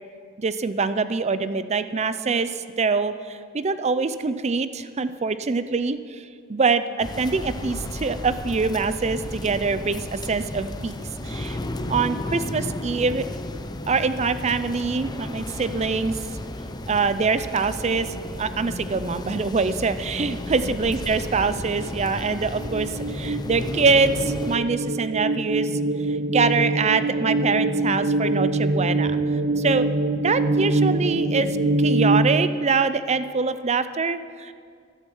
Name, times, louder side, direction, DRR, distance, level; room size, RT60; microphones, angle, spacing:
voice 1, 0.4-11.0 11.2-11.6 11.9-13.2 13.9-16.1 16.9-18.1 18.4-25.7 26.1-29.2 29.6-29.9 30.2-34.5, right 4 dB, 35° right, 13 dB, 0.5 m, -24 dB
sound 1, 7.0-24.6, left 1 dB, 20° left, 0.6 m, -33 dB
sound 2, 21.8-32.3, right 2 dB, 70° right, 0.9 m, -24 dB
14.0 x 11.5 x 5.5 m, 2.2 s
head